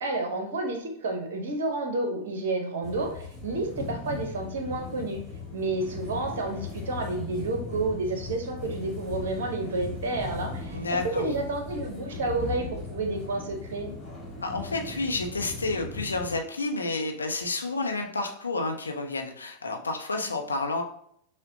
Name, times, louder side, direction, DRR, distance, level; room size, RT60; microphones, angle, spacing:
voice 1, 0.0-5.2 5.5-13.9, right 2 dB, 55° right, 4 dB, 0.8 m, -30 dB
sound 1, 2.8-16.4, left 3 dB, 5° left, 1.6 m, -38 dB
voice 2, 10.7-11.2 14.4-20.8, left 3 dB, 75° left, 3 dB, 0.6 m, -30 dB
6.2 x 2.2 x 2.7 m, 0.67 s
figure-of-eight pair, 90°, 0 cm